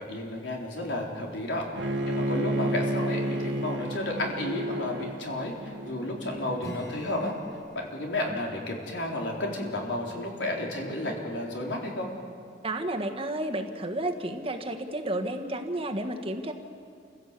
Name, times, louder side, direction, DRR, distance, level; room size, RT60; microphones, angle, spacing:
voice 1, 0.0-7.3 7.7-12.1, left 1 dB, 85° left, -1 dB, 4.1 m, -32 dB
Bowed string instrument, 1.7-6.8, right 1 dB, 85° right, 1.8 m, -31 dB
Acoustic guitar / Strum, 6.6-10.9, equal, 20° left, 3.8 m, -48 dB
voice 2, 12.6-16.5, right 1 dB, 35° right, 4 dB, 1.5 m, -31 dB
28.0 x 16.0 x 8.3 m, 2.4 s
head